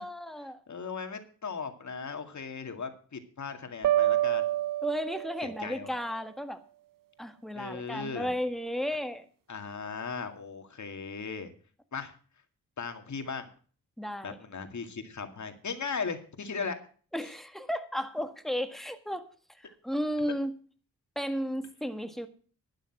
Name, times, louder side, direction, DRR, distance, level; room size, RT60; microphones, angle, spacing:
voice 1, 0.0-0.6 4.8-6.6 7.2-9.2 14.0-14.4 17.1-19.2 19.8-20.6 21.1-22.3, equal, ahead, 1.6 m, -33 dB
voice 2, 0.7-4.4 5.4-5.9 7.5-8.3 9.5-11.5 11.9-12.1 12.8-13.5 14.2-16.8, left 5 dB, 55° left, 2.2 m, -37 dB
sound 1, 3.8-5.7, right 13 dB, 70° right, 0.6 m, -27 dB
12.0 x 8.9 x 6.0 m
cardioid pair, 65°, 35 cm